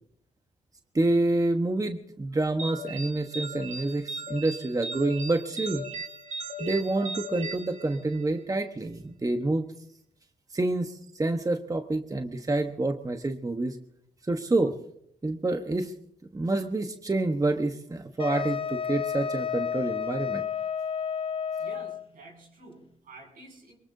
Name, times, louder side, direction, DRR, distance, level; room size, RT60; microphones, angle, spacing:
voice 1, 0.9-5.8 6.6-9.7 10.5-13.8 14.2-14.8 15.2-15.9 16.3-20.5, right 2 dB, 25° right, 6 dB, 1.2 m, -28 dB
sound 1, 2.6-8.4, right 2 dB, 60° right, 4.6 m, -38 dB
Wind instrument woodwind instrument, 18.2-22.0, left 7 dB, 40° left, 1.3 m, -31 dB
voice 2, 21.6-23.8, right 2 dB, 80° right, 1 dB, 6.9 m, -49 dB
23.5 x 21.5 x 2.7 m, 0.69 s
cardioid pair, 55°, 14 cm